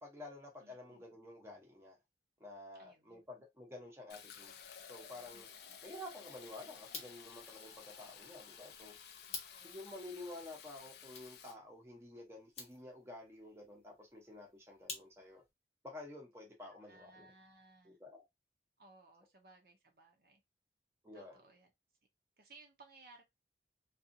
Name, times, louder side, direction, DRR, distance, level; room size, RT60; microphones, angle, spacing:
voice 1, 0.0-2.0 2.4-5.5 5.8-9.0 9.6-15.4 15.8-17.3 17.8-18.2 21.0-21.4, left 2 dB, 15° right, 0.7 m, -51 dB
voice 2, 0.6-1.0 2.7-3.2 5.3-5.4 9.3-9.8 16.7-18.0 18.8-20.4 21.1-21.7 22.4-23.2, right 2 dB, 55° right, 0.6 m, -62 dB
Fill (with liquid), 4.1-11.5, left 7 dB, 70° left, 0.4 m, -54 dB
sound 1, 6.8-15.5, left 4 dB, 35° left, 0.7 m, -53 dB
2.7 x 2.4 x 2.5 m
head